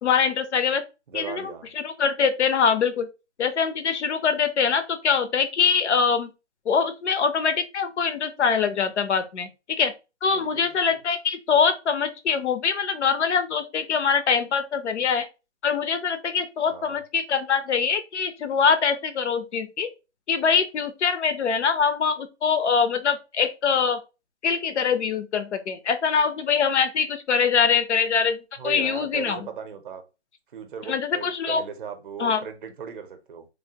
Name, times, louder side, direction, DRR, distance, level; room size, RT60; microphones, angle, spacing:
voice 1, 0.0-0.8 1.1-1.5 1.8-3.1 3.4-6.3 6.7-9.9 10.2-15.3 15.6-19.9 20.3-24.0 24.4-29.4 30.9-31.6 32.2-32.4, left 6 dB, 75° left, 0.7 m, -23 dB
voice 2, 1.1-1.7 10.3-11.0 16.7-17.0 28.6-30.0 30.5-33.5, right 7 dB, 45° right, 0.6 m, -37 dB
3.2 x 2.0 x 2.8 m
hypercardioid pair, 160°, 35 cm